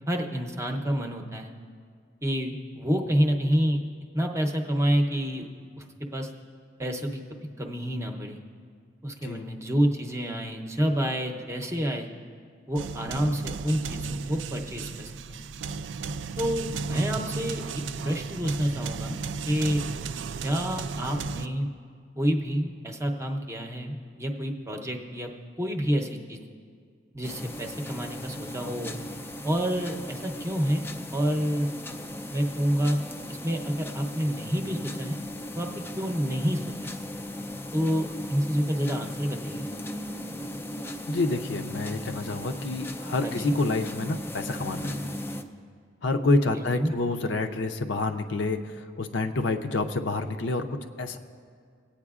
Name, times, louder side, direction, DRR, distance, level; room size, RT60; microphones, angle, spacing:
voice 1, 0.1-1.5 2.2-3.8 4.1-5.5 5.8-5.9 6.1-6.3 6.8-8.4 9.0-12.1 12.7-15.4 16.4-19.2 19.5-19.8 20.4-21.7 22.2-25.3 25.6-26.4 27.1-29.0 29.4-31.7 32.3-33.0 33.3-35.2 35.6-36.9 37.7-39.7 43.2-43.6 46.5-46.9, equal, 15° right, 2 dB, 0.7 m, -28 dB
sound 1, 12.8-21.5, right 4 dB, 70° right, 0.3 m, -34 dB
sound 2, 27.2-45.4, left 1 dB, 10° left, 0.4 m, -37 dB
voice 2, 41.1-44.9 46.0-51.2, left 2 dB, 70° left, 6 dB, 0.6 m, -28 dB
26.0 x 8.7 x 2.4 m, 2.1 s
head